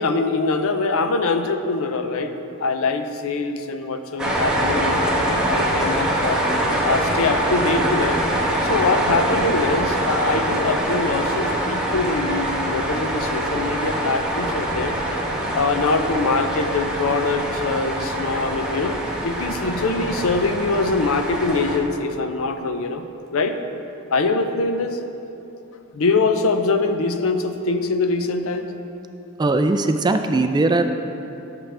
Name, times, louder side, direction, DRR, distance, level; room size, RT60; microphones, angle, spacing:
voice 1, 0.0-6.4 6.8-8.2 8.6-15.0 15.5-23.6 24.1-25.0 25.9-28.7, left 3 dB, 65° left, 8 dB, 0.5 m, -23 dB
sound 1, 4.2-21.8, right 1 dB, 5° right, 1.3 m, -24 dB
voice 2, 29.4-30.9, right 2 dB, 20° right, 7 dB, 0.3 m, -19 dB
11.5 x 6.9 x 3.3 m, 2.9 s
head